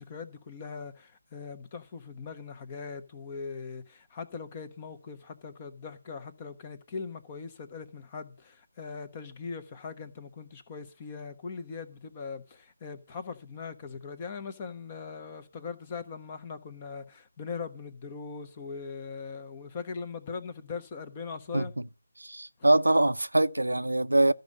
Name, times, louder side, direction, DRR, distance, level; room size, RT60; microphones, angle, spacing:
voice 1, 0.0-21.7, left 5 dB, 20° left, 1.1 m, -40 dB
voice 2, 22.2-24.3, right 1 dB, 85° right, 0.6 m, -23 dB
13.0 x 5.4 x 8.5 m
figure-of-eight pair, 160°, 0 cm